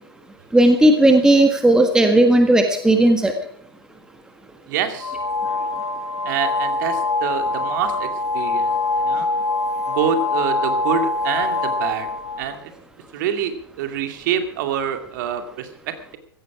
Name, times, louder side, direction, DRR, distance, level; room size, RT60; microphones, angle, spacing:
voice 1, 0.5-3.3, right 1 dB, 5° right, 5 dB, 1.5 m, -14 dB
voice 2, 4.7-5.2 6.3-8.1 8.3-9.3 9.9-12.1 12.4-12.7 13.1-16.2, right 8 dB, 50° right, 7 dB, 2.4 m, -26 dB
sound 1, 5.0-12.5, left 3 dB, 85° left, 1.6 m, -24 dB
15.5 x 15.0 x 4.9 m, 0.63 s
figure-of-eight pair, 110°, 13 cm